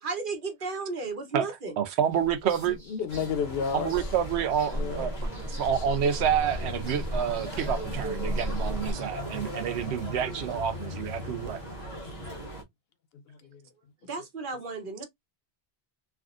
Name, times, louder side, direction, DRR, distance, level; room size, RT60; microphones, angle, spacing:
voice 1, 0.0-1.7 14.1-15.0, right 4 dB, 55° right, 1.1 m, -34 dB
voice 2, 1.3-2.8 3.7-11.6, right 8 dB, 90° right, 0.9 m, -28 dB
sound 1, 2.1-8.9, equal, 15° right, 1.0 m, -36 dB
voice 3, 2.6-3.9 4.7-5.1 5.8-5.9 11.6-11.7 13.3-13.6, left 7 dB, 70° left, 0.8 m, -32 dB
sound 2, 3.1-12.6, equal, 45° left, 1.2 m, -38 dB
3.4 x 2.4 x 2.4 m
omnidirectional pair, 1.1 m